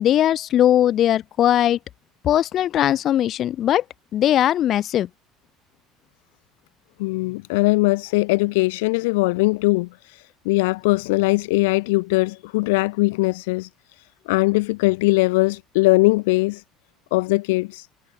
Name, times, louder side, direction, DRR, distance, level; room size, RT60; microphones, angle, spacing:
voice 1, 0.0-1.8 2.2-3.8 4.1-5.1, left 11 dB, 55° left, 0.6 m, -19 dB
voice 2, 7.0-13.7 14.3-16.6 17.1-17.9, left 23 dB, 80° left, 1.3 m, -20 dB
hypercardioid pair, 75°, 0 cm